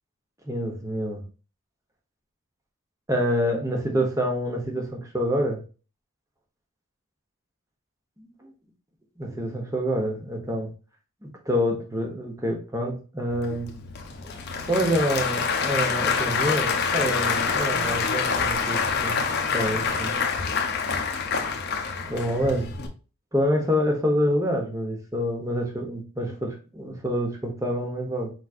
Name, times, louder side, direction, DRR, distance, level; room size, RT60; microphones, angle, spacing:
voice 1, 0.4-1.2 3.1-5.6 8.2-8.5 9.2-10.7 11.2-13.7 14.2-14.4 14.7-19.2 19.5-20.1 22.1-22.7 23.3-28.3, equal, 15° right, 1 dB, 1.0 m, -27 dB
Applause / Crowd, 13.3-22.9, left 5 dB, 50° left, 0.7 m, -26 dB
4.8 x 4.0 x 2.4 m, 0.35 s
head